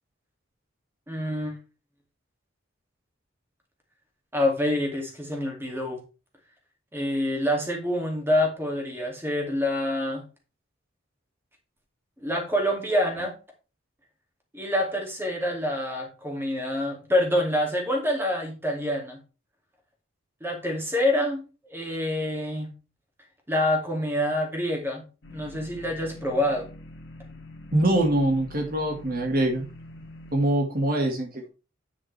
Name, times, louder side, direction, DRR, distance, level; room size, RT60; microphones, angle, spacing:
voice 1, 1.1-1.5 4.3-6.0 6.9-10.2 12.2-13.3 14.5-19.2 20.4-21.4 21.7-22.7 23.5-25.0 25.3-26.7, left 1 dB, 10° right, 1 dB, 2.4 m, -26 dB
sound 1, 25.2-30.3, left 1 dB, 65° left, 1.7 m, -45 dB
voice 2, 27.7-29.7 30.3-31.5, right 1 dB, 50° right, 2 dB, 1.8 m, -24 dB
9.4 x 7.5 x 3.3 m, 0.32 s
head